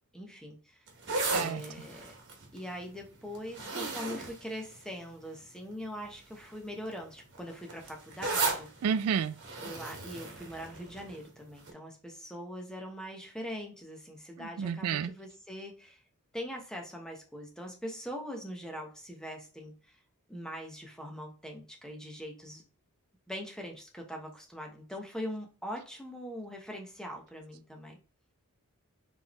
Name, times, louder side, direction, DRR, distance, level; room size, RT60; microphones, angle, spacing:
voice 1, 0.1-0.9 1.3-2.1 2.5-8.7 9.6-16.0 16.3-20.0 20.3-22.6 23.3-28.0, equal, 5° left, 0.9 m, -42 dB
sound 1, 0.9-5.3 6.0-6.3 6.6-11.2 11.7-11.8, right 3 dB, 55° right, 1.4 m, -36 dB
voice 2, 8.8-9.3 14.4-15.1, right 7 dB, 75° right, 0.3 m, -30 dB
4.4 x 3.4 x 3.0 m
head